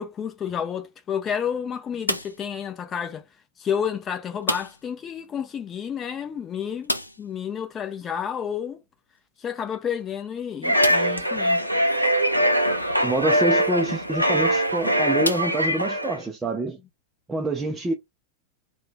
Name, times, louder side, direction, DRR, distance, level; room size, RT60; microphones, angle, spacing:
voice 1, 0.0-3.2 3.6-8.8 9.4-11.6, left 8 dB, 25° left, 0.6 m, -30 dB
sound 1, 2.0-2.6 4.4-5.0 5.2-5.3 5.7-5.8 6.8-7.4 9.2-9.3 9.9-10.0 10.8-11.3 12.0-12.1 14.1-14.3 15.2-16.1, left 1 dB, 85° left, 0.4 m, -30 dB
sound 2, 10.6-16.2, equal, 90° right, 0.5 m, -22 dB
voice 2, 13.0-16.8 17.3-17.9, right 2 dB, 15° right, 0.5 m, -26 dB
2.7 x 2.2 x 3.5 m
figure-of-eight pair, 90°, 0 cm